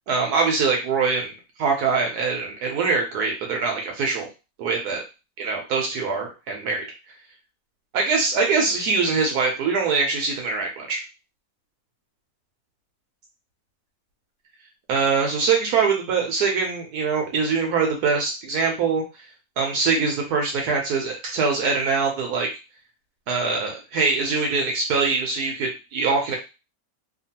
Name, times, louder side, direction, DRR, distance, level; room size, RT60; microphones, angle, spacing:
voice 1, 0.1-4.3 4.6-5.0 5.4-6.9 7.9-11.0 14.9-19.0 19.6-22.5 23.3-26.4, right 4 dB, 70° right, 1 dB, 1.0 m, -23 dB
2.9 x 2.3 x 2.7 m, 0.29 s
omnidirectional pair, 2.0 m